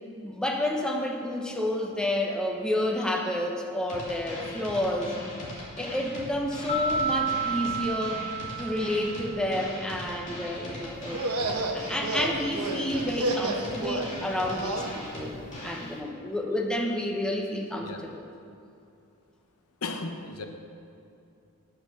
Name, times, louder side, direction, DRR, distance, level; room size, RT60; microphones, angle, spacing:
voice 1, 0.2-5.2 5.8-8.3 8.6-11.2 11.5-15.4 15.6-18.2, left 1 dB, 5° left, 0 dB, 0.8 m, -30 dB
sound 1, 3.9-15.9, left 1 dB, 35° left, 2.4 m, -40 dB
sound 2, 6.7-9.4, right 4 dB, 40° right, 1.2 m, -31 dB
sound 3, 11.1-14.9, right 2 dB, 75° right, 1.0 m, -31 dB
voice 2, 19.8-20.5, left 3 dB, 75° left, 5 dB, 0.8 m, -35 dB
8.8 x 6.0 x 6.5 m, 2.6 s
head